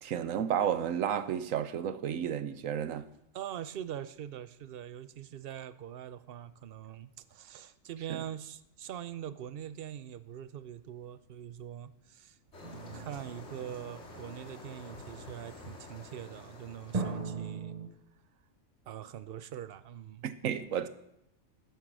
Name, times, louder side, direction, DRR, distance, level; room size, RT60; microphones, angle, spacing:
voice 1, 0.0-3.0 8.1-8.2 20.2-20.9, right 9 dB, 85° right, 1.2 m, -32 dB
voice 2, 3.3-12.4 12.9-17.7 18.9-20.3, right 10 dB, 55° right, 0.8 m, -43 dB
sound 1, 12.5-17.6, left 2 dB, 60° left, 2.3 m, -49 dB
sound 2, 12.6-14.4 16.9-17.9, right 4 dB, 30° right, 1.1 m, -38 dB
11.5 x 9.3 x 6.1 m
omnidirectional pair, 1.3 m